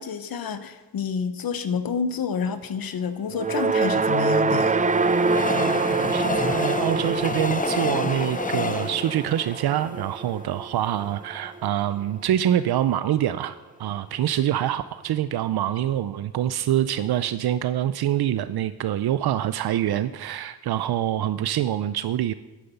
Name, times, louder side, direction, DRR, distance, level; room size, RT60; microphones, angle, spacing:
voice 1, 0.0-4.8, left 6 dB, 70° left, 11 dB, 1.0 m, -29 dB
sound 1, 3.3-11.7, right 4 dB, 20° right, 0.4 m, -25 dB
Train, 3.6-10.8 11.4-11.5 11.7-11.8, left 4 dB, 20° left, 0.6 m, -30 dB
voice 2, 5.5-22.3, right 11 dB, 85° right, 13 dB, 0.5 m, -25 dB
10.5 x 9.4 x 7.0 m, 1.1 s
wide cardioid pair, 140°, 37 cm